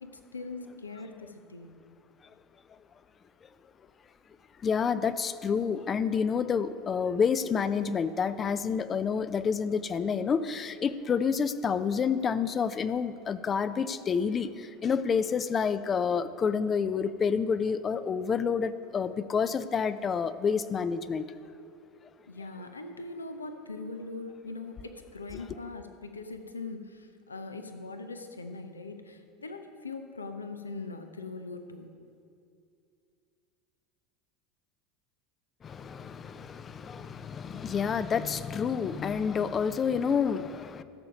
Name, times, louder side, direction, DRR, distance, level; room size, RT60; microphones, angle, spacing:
voice 1, 0.0-1.8 22.3-31.9, left 3 dB, 90° left, 6 dB, 0.7 m, -41 dB
voice 2, 4.6-21.3 35.6-40.8, left 6 dB, 30° left, 13 dB, 0.5 m, -29 dB
13.5 x 6.9 x 5.2 m, 2.5 s
hypercardioid pair, 80°, 0 cm